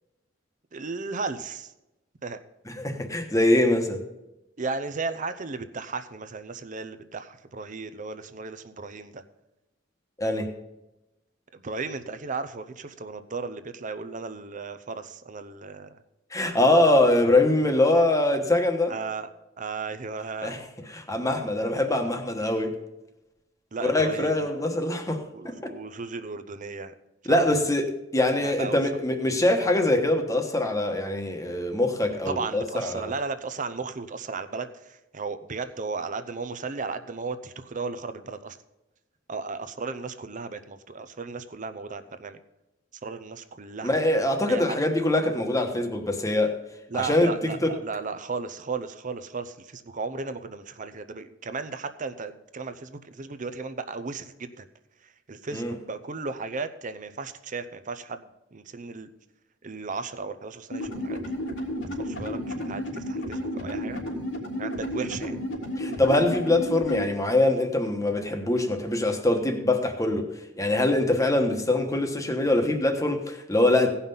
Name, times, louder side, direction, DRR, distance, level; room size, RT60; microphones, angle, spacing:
voice 1, 0.7-1.7 2.2-2.4 4.6-9.2 11.5-16.0 18.9-19.3 19.6-20.5 23.7-24.7 25.3-26.9 27.2-27.4 28.2-28.8 32.3-38.6 39.3-42.4 43.0-44.0 44.5-44.8 46.9-54.7 55.0-59.1 59.6-61.4 62.0-64.0 64.6-65.4, right 4 dB, 40° right, 0.7 m, -35 dB
voice 2, 2.7-4.0 10.2-10.5 16.3-19.0 20.4-22.7 23.8-25.7 27.2-33.1 43.8-46.6 46.9-47.7 55.5-55.7 65.8-70.3 70.6-73.9, left 1 dB, 15° left, 1.2 m, -23 dB
sound 1, 60.7-67.0, equal, 85° left, 3.2 m, -32 dB
17.0 x 5.7 x 5.5 m
head